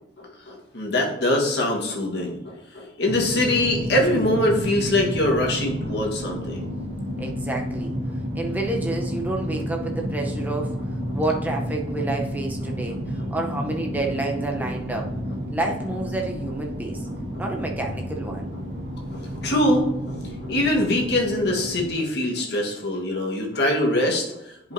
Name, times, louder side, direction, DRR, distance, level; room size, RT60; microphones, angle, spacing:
voice 1, 0.2-6.7 19.1-20.2 20.4-24.7, left 1 dB, 60° left, 0 dB, 1.4 m, -23 dB
sound 1, 3.0-21.9, equal, 80° right, 1.6 m, -31 dB
voice 2, 7.2-7.9 8.3-10.8 11.1-15.1 15.5-17.0 17.4-18.5, right 2 dB, 10° right, 1 dB, 0.7 m, -29 dB
10.5 x 5.1 x 2.7 m, 0.86 s
head